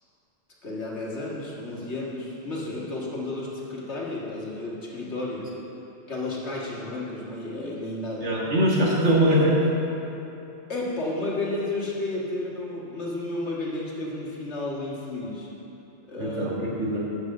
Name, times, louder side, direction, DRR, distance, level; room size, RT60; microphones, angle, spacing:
voice 1, 0.6-5.5 6.1-8.4 10.7-15.5 16.1-16.9, left 2 dB, 75° left, -4 dB, 1.9 m, -32 dB
voice 2, 8.2-9.6 16.2-17.0, equal, 80° right, -5 dB, 2.0 m, -22 dB
8.1 x 6.1 x 7.5 m, 3.0 s
omnidirectional pair, 1.2 m